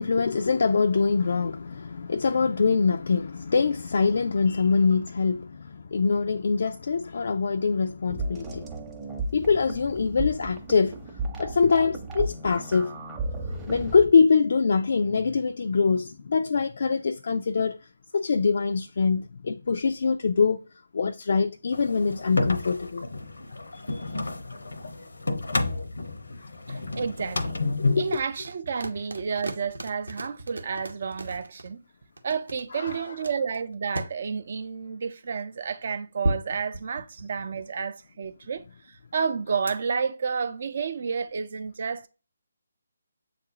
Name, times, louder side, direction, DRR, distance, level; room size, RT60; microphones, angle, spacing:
voice 1, 0.0-8.7 9.3-11.0 11.4-12.9 13.7-17.8 18.1-20.7 20.9-23.0 23.7-24.0 26.4-26.5 27.8-28.2 32.7-33.2, left 5 dB, 60° left, 0.3 m, -24 dB
sound 1, 8.1-14.1, right 2 dB, 10° right, 0.7 m, -34 dB
sound 2, 21.7-28.2, left 3 dB, 80° left, 0.7 m, -30 dB
voice 2, 26.7-27.6 28.0-31.8 32.2-42.1, right 6 dB, 50° right, 0.5 m, -31 dB
sound 3, 28.1-31.7 32.2-34.1 36.2-37.6 39.7-39.8, right 1 dB, 90° right, 0.9 m, -34 dB
7.4 x 2.5 x 2.8 m
figure-of-eight pair, 150°, 0 cm